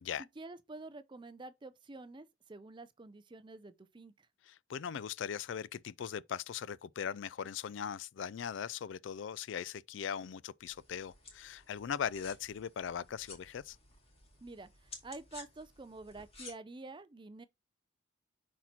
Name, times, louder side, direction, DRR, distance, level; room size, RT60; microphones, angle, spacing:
voice 1, 0.2-4.3 14.4-17.5, right 2 dB, 25° right, 0.5 m, -48 dB
voice 2, 4.5-13.8, left 8 dB, 70° left, 0.4 m, -39 dB
sound 1, 10.6-16.5, left 3 dB, 30° left, 2.3 m, -54 dB
6.0 x 4.3 x 4.3 m
head